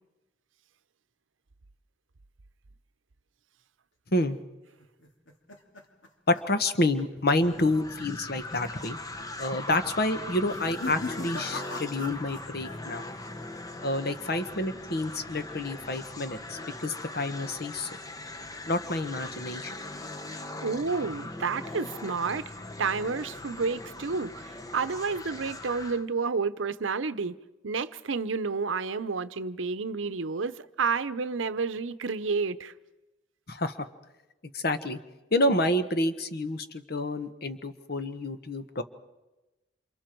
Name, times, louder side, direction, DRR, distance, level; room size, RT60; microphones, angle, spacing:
sound 1, 4.8-7.3 7.6-7.9 8.2-8.3 9.1-9.5 10.4-12.8 13.1-13.6, left 2 dB, 90° left, 2.8 m, -41 dB
voice 1, 6.3-9.0 9.4-13.0 13.8-17.9 18.7-19.7 33.5-33.8 34.5-35.0 35.3-38.8, left 1 dB, 55° left, 1.3 m, -28 dB
sound 2, 7.4-26.0, left 2 dB, 20° left, 0.9 m, -40 dB
voice 2, 20.6-22.5 22.8-27.3 27.6-32.7, right 4 dB, 85° right, 0.7 m, -30 dB
28.5 x 27.5 x 4.6 m
head